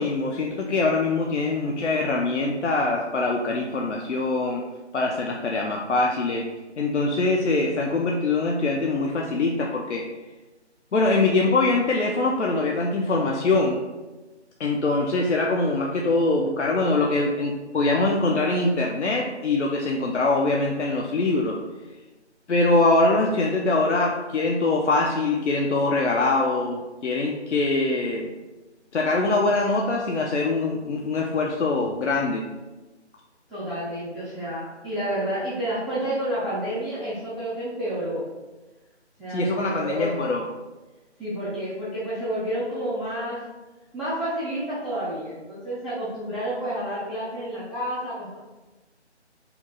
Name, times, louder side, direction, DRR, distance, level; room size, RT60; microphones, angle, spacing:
voice 1, 0.0-4.6 4.9-6.5 6.8-10.0 10.9-13.8 14.6-21.6 22.5-28.3 28.9-32.4 39.3-40.4, left 3 dB, 75° left, -1 dB, 0.5 m, -23 dB
voice 2, 33.5-38.2 39.2-40.1 41.2-43.4 43.9-48.4, right 1 dB, ahead, -12 dB, 0.4 m, -30 dB
2.8 x 2.1 x 3.9 m, 1.2 s
figure-of-eight pair, 155°, 35 cm